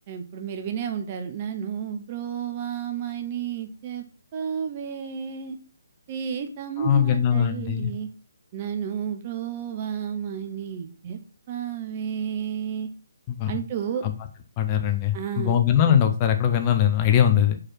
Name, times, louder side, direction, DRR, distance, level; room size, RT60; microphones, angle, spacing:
voice 1, 0.1-4.0 4.3-5.6 6.1-8.1 8.5-11.2 11.5-12.9 13.5-14.0 15.1-15.6, right 8 dB, 30° right, 7 dB, 0.8 m, -31 dB
voice 2, 6.8-7.9 13.3-13.5 14.0-14.1 14.6-17.6, left 9 dB, 25° left, 6 dB, 0.7 m, -21 dB
4.9 x 4.2 x 5.9 m, 0.38 s
figure-of-eight pair, 140°, 0 cm